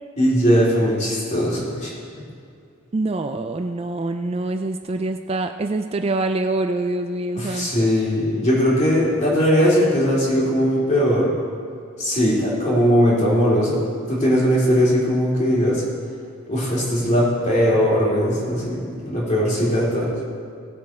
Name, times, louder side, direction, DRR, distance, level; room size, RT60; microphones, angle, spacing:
voice 1, 0.2-1.9 7.4-11.3 12.0-13.8 14.1-15.8 16.5-20.1, equal, 35° left, -5 dB, 3.0 m, -19 dB
voice 2, 2.9-7.9 12.2-12.8, right 2 dB, 30° right, 7 dB, 0.3 m, -25 dB
17.0 x 7.3 x 4.4 m, 2.4 s
head